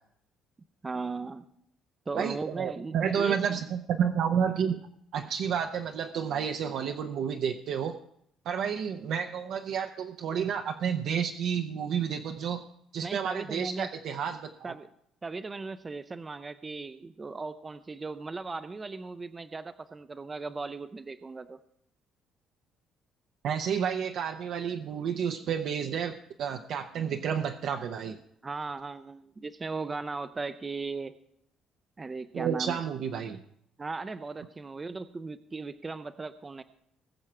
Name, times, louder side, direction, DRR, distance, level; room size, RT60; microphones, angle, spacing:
voice 1, 0.8-1.5 2.1-3.6 13.0-13.9 14.6-14.9 15.2-21.6 28.4-31.2 32.0-32.8 33.8-36.6, right 3 dB, 15° right, 11 dB, 0.4 m, -37 dB
voice 2, 2.2-4.9 5.1-8.0 8.4-12.7 12.9-14.7 23.4-28.2 32.3-33.4, right 7 dB, 55° right, 5 dB, 0.7 m, -30 dB
20.0 x 7.2 x 4.4 m, 0.71 s
cardioid pair, 170°, 0 cm